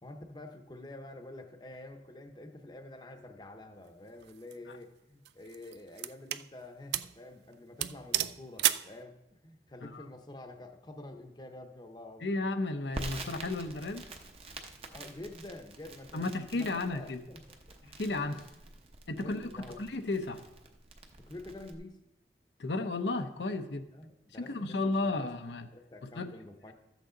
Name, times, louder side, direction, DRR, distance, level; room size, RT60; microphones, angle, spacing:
voice 1, 0.0-12.4 14.9-17.4 18.3-18.5 19.2-19.8 21.2-22.0 23.9-25.3 25.7-26.7, left 1 dB, 25° left, 5 dB, 0.8 m, -48 dB
sound 1, 4.2-4.5 5.3-6.5 6.9-7.2 7.5-7.6 7.8-8.9, right 13 dB, 70° right, 0.3 m, -32 dB
voice 2, 12.2-14.1 16.1-17.2 17.8-18.5 19.1-20.4 22.6-23.9 24.4-25.7 26.0-26.3, left 2 dB, 85° left, 6 dB, 0.8 m, -33 dB
Crackle, 12.9-21.7, right 2 dB, 35° right, 0.8 m, -47 dB
13.0 x 8.1 x 3.8 m, 0.92 s
head